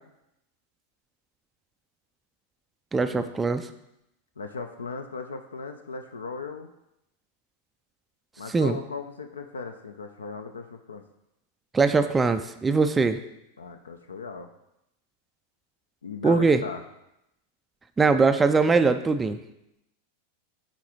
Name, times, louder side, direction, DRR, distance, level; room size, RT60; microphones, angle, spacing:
voice 1, 2.9-3.6 8.5-8.8 11.7-13.2 16.2-16.6 18.0-19.4, right 4 dB, 15° right, 9 dB, 0.3 m, -21 dB
voice 2, 4.4-6.7 8.4-11.0 13.6-14.5 16.0-16.8, left 4 dB, 70° left, 6 dB, 0.4 m, -37 dB
8.3 x 3.8 x 3.1 m, 0.84 s
figure-of-eight pair, 90°, 0 cm